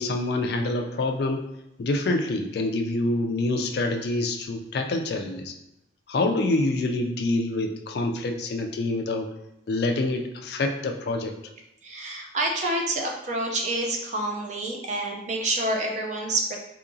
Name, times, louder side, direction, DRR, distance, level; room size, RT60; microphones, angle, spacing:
voice 1, 0.0-1.4 1.8-5.5 6.1-9.3 9.7-11.3, left 2 dB, 55° left, 4 dB, 0.3 m, -26 dB
voice 2, 11.8-16.6, right 2 dB, 40° right, 0 dB, 0.5 m, -28 dB
3.8 x 2.8 x 2.6 m, 0.86 s
head